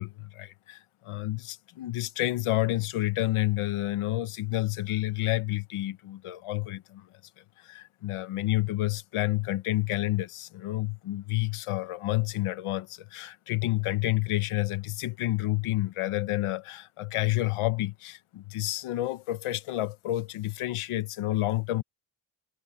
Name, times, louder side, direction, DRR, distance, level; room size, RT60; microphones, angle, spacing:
voice 1, 0.0-7.1 7.6-21.8, left 16 dB, 90° left, 1.1 m, -29 dB
cardioid pair, 60°, 49 cm